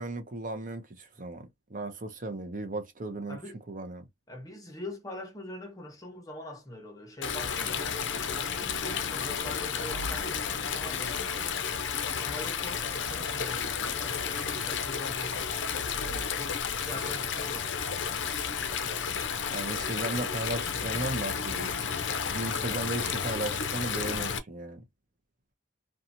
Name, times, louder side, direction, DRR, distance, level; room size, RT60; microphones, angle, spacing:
voice 1, 0.0-3.4 3.7-4.0 19.5-21.7 22.3-24.8, right 2 dB, 40° right, 0.6 m, -35 dB
voice 2, 3.3-3.6 4.3-8.0 8.3-11.2 12.2-17.7, left 1 dB, 15° left, 0.8 m, -43 dB
Stream, 7.2-24.4, left 6 dB, 60° left, 0.5 m, -32 dB
2.8 x 2.3 x 2.6 m
head